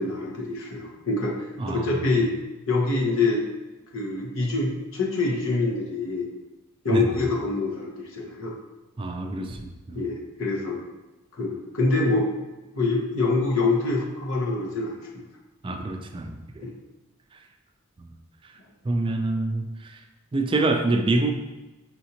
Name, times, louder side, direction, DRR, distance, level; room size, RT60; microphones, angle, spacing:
voice 1, 0.0-1.4 1.7-2.3 2.7-3.4 3.9-6.3 6.8-8.5 9.9-10.8 11.4-12.3 12.7-15.2 16.6-16.7, left 3 dB, 70° left, -3 dB, 0.9 m, -25 dB
voice 2, 1.6-2.0 6.9-7.2 9.0-10.1 15.6-16.6 18.0-18.1 18.8-20.0 20.3-21.3, right 2 dB, 25° right, 5 dB, 0.3 m, -26 dB
5.7 x 2.6 x 2.8 m, 1.1 s
head